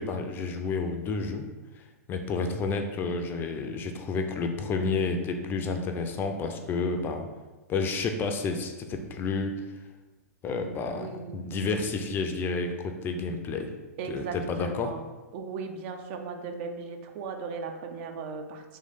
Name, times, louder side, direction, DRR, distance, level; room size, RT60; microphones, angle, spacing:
voice 1, 0.0-1.5 1.8-1.9 2.1-7.3 7.7-9.5 10.4-13.7 14.1-14.9, left 4 dB, 25° left, 5 dB, 0.4 m, -30 dB
voice 2, 10.5-11.9 14.0-15.0 15.3-18.6, right 5 dB, 45° right, 5 dB, 0.5 m, -37 dB
3.2 x 3.2 x 4.0 m, 1.2 s
figure-of-eight pair, 100°, 9 cm